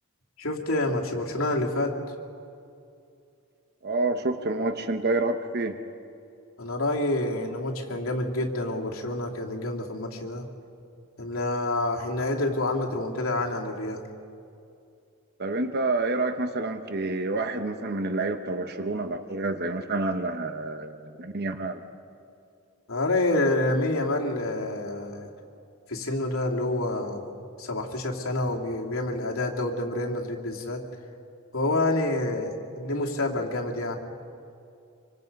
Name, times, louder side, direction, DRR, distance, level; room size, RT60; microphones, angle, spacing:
voice 1, 0.4-2.0 6.6-10.5 11.2-14.0 22.9-25.3 25.9-27.3 27.6-30.8 31.5-34.0, left 2 dB, 70° left, 0 dB, 2.6 m, -28 dB
voice 2, 3.8-5.8 15.4-21.8, right 2 dB, 45° right, 8 dB, 1.0 m, -28 dB
26.0 x 25.0 x 5.4 m, 2.5 s
head